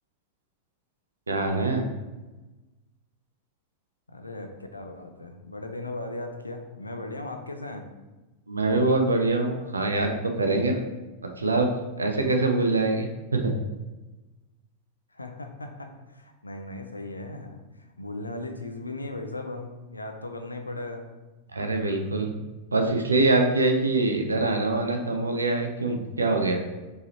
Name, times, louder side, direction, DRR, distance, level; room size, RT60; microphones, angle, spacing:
voice 1, 1.3-1.9 8.5-10.8 11.4-13.5 21.5-22.4 22.7-26.6, right 2 dB, 75° right, 4 dB, 0.4 m, -24 dB
voice 2, 4.1-7.9 15.1-21.1, left 2 dB, 80° left, 6 dB, 0.4 m, -37 dB
4.6 x 3.0 x 2.9 m, 1.1 s
figure-of-eight pair, 90°, 0 cm